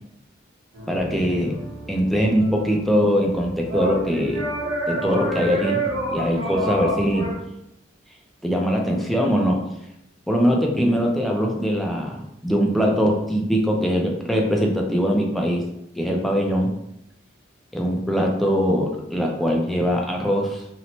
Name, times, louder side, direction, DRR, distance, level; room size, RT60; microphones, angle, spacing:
sound 1, 0.7-7.3, right 2 dB, 75° right, 1.0 m, -29 dB
voice 1, 0.9-1.6 1.9-4.4 4.9-5.8 6.1-7.3 8.4-9.6 10.3-15.6 16.0-16.7 17.7-20.6, equal, ahead, -1 dB, 0.3 m, -22 dB
2.7 x 2.0 x 2.9 m, 0.81 s
head